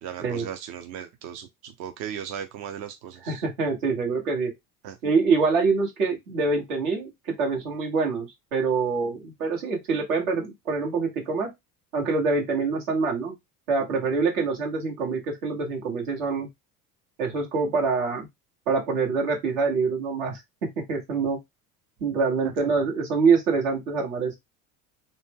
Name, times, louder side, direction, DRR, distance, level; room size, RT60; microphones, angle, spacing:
voice 1, 0.0-3.4 4.8-4.9 22.6-22.7, right 9 dB, 45° right, 0.5 m, -37 dB
voice 2, 3.2-4.5 5.0-11.5 11.9-13.3 13.7-16.5 17.2-18.3 18.7-21.4 22.0-24.4, right 4 dB, 70° right, 1.3 m, -25 dB
2.5 x 2.1 x 3.3 m
hypercardioid pair, 70°, 45 cm